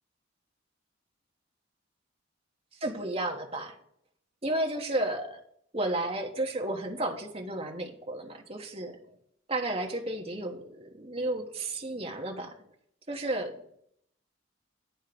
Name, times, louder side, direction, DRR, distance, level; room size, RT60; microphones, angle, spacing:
voice 1, 2.8-3.7 4.4-5.4 5.7-9.0 9.5-12.5 13.1-13.5, right 1 dB, 30° right, 2 dB, 1.1 m, -32 dB
10.0 x 3.6 x 6.7 m, 0.69 s
head